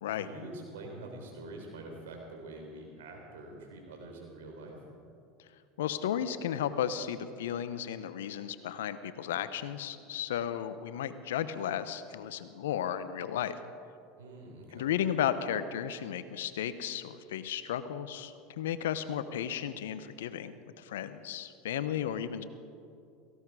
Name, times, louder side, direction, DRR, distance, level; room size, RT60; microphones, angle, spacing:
voice 1, 0.1-4.8 14.2-14.9, right 2 dB, 80° right, 1 dB, 3.8 m, -45 dB
voice 2, 5.8-13.5 14.7-22.4, left 10 dB, 80° left, 13 dB, 0.8 m, -34 dB
17.5 x 15.5 x 4.8 m, 2.5 s
hypercardioid pair, 85°, 0 cm